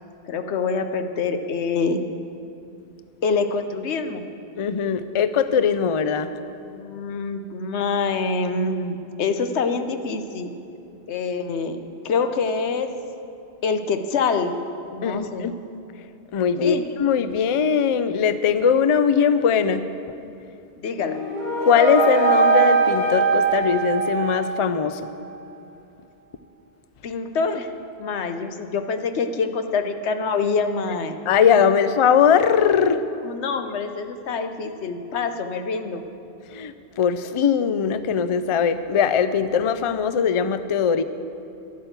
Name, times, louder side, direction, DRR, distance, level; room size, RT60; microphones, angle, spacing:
voice 1, 0.3-2.0 3.2-4.2 6.7-10.5 11.1-11.8 12.0-12.9 13.6-14.5 14.9-15.5 16.6-16.8 20.8-21.2 27.0-27.7 28.0-31.2 33.2-36.0, left 4 dB, 90° left, 8 dB, 1.1 m, -25 dB
voice 2, 4.6-6.3 15.0-15.6 16.3-19.8 21.6-25.1 31.3-33.0 36.5-41.0, left 7 dB, 50° left, 12 dB, 0.4 m, -20 dB
sound 1, 20.9-24.9, right 4 dB, 65° left, 3.5 m, -21 dB
11.0 x 8.8 x 8.0 m, 2.6 s
omnidirectional pair, 1.1 m